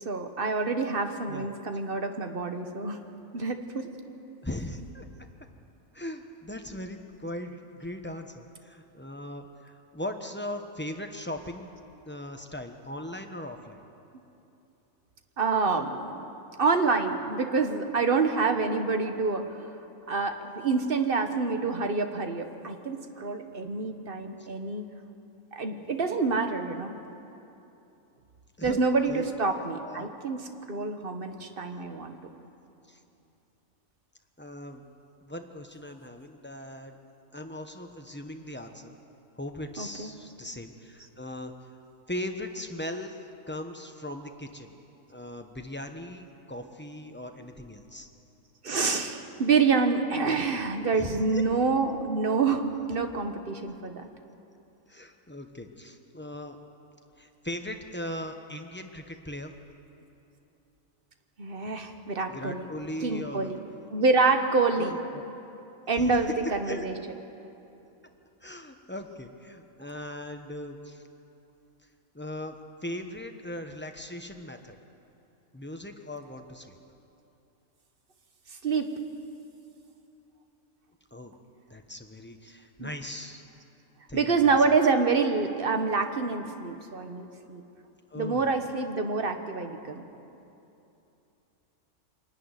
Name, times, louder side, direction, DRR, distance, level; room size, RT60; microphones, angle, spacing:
voice 1, 0.0-3.0 3.3-3.9 15.4-16.2 16.6-19.4 20.1-24.8 25.5-27.0 28.6-32.2 39.8-40.1 48.6-54.1 61.4-62.7 63.0-63.6 63.9-64.9 65.9-66.9 78.6-78.9 82.8-82.9 84.1-87.6 88.1-90.1, right 4 dB, 45° right, 6 dB, 1.3 m, -27 dB
voice 2, 4.4-5.1 5.9-11.7 12.1-13.8 28.6-28.8 29.1-29.3 29.8-30.1 32.9-33.0 34.4-34.8 35.2-37.0 37.3-39.0 39.4-41.7 42.1-44.7 45.1-48.1 50.9-51.4 54.9-56.6 57.2-59.5 62.3-63.6 64.8-65.2 65.9-66.2 66.7-66.9 68.4-71.0 72.1-72.6 72.8-74.8 75.5-76.8 81.1-81.4 81.7-83.4 84.1-84.6 88.1-88.6, left 1 dB, 10° left, 5 dB, 1.0 m, -39 dB
25.0 x 10.5 x 9.8 m, 2.8 s
omnidirectional pair, 1.4 m